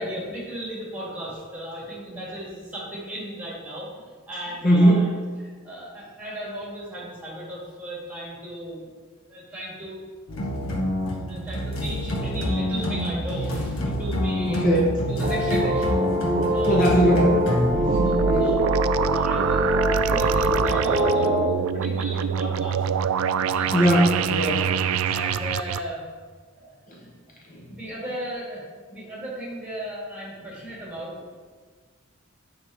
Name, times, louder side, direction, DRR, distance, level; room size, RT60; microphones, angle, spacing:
voice 1, 0.0-3.9 4.3-5.1 5.4-8.9 9.3-10.0 10.7-10.8 11.3-16.0 16.5-17.0 17.9-18.6 18.9-22.9 23.4-24.0 24.3-24.6 25.1-26.0 26.5-26.7 27.7-28.6 28.9-31.1, equal, 5° right, -5 dB, 2.7 m, -36 dB
voice 2, 4.6-5.1 14.5-14.9 16.7-18.5 23.7-24.6, right 1 dB, 40° left, -1 dB, 1.0 m, -20 dB
sound 1, 10.3-17.8, equal, 85° left, 1.4 m, -27 dB
sound 2, 15.2-21.5, equal, 35° right, 1.0 m, -24 dB
sound 3, 17.6-25.8, right 7 dB, 85° right, 0.4 m, -25 dB
8.7 x 5.8 x 4.4 m, 1.5 s
head